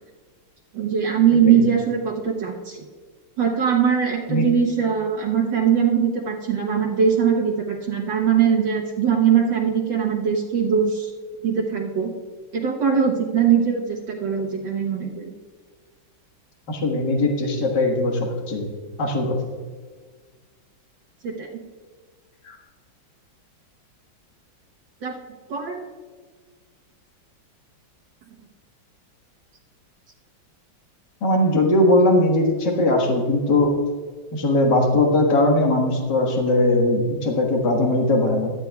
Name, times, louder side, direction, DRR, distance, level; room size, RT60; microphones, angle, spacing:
voice 1, 0.7-2.8 3.4-11.1 11.4-12.1 12.5-15.3 21.2-21.5 25.0-25.1 25.5-25.8, right 7 dB, 70° right, -1 dB, 1.8 m, -21 dB
voice 2, 16.7-18.7 19.0-19.4 22.4-22.6 31.2-33.7 34.3-38.5, left 1 dB, 60° left, 1 dB, 2.1 m, -20 dB
16.5 x 12.0 x 2.3 m, 1.5 s
omnidirectional pair, 2.2 m